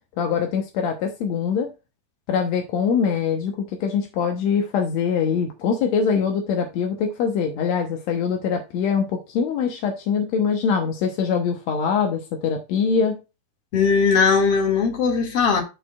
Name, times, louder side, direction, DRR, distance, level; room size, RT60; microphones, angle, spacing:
voice 1, 0.2-1.7 2.3-13.2, left 6 dB, 70° left, 1.7 m, -23 dB
voice 2, 13.7-15.6, left 5 dB, 45° left, 2.8 m, -19 dB
12.5 x 4.9 x 2.4 m
omnidirectional pair, 4.3 m